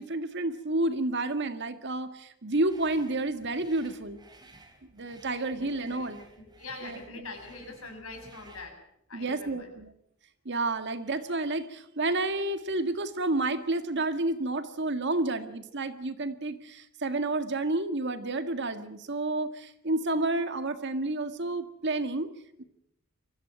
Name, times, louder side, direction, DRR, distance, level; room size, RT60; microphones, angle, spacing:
voice 1, 0.0-4.2 4.9-6.2 6.8-7.0 9.1-9.9 10.5-22.3 22.6-22.7, right 2 dB, 55° right, 9 dB, 1.8 m, -30 dB
sound 1, 2.6-8.8, right 2 dB, 20° right, 3.9 m, -55 dB
voice 2, 5.4-8.8 9.1-9.7, left 3 dB, 70° left, 4 dB, 7.2 m, -44 dB
24.0 x 15.0 x 9.0 m, 0.77 s
head